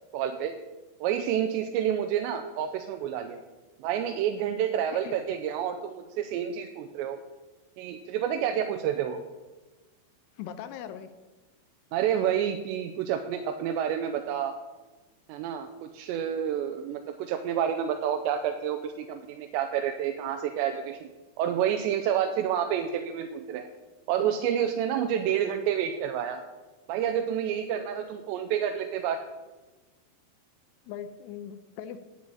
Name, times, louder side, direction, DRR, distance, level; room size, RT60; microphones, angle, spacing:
voice 1, 0.1-0.5 1.0-3.4 3.8-7.2 7.8-9.2 11.9-14.6 15.3-21.1 21.4-23.7 24.1-26.4 26.9-29.2, right 9 dB, 85° right, 5 dB, 2.9 m, -29 dB
voice 2, 10.4-11.1 30.9-32.0, left 9 dB, 80° left, 10 dB, 2.7 m, -40 dB
10.0 x 8.8 x 8.9 m, 1.2 s
omnidirectional pair, 5.0 m